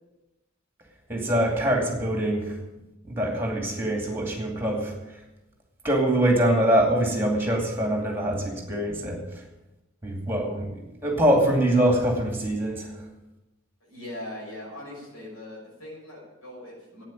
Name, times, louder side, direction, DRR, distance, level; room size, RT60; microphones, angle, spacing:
voice 1, 1.1-2.6 3.0-4.9 5.8-9.4 10.0-12.9, right 1 dB, 10° right, 1 dB, 2.4 m, -24 dB
voice 2, 13.8-17.0, left 1 dB, 75° left, -5 dB, 6.3 m, -40 dB
11.5 x 9.2 x 9.0 m, 0.98 s
head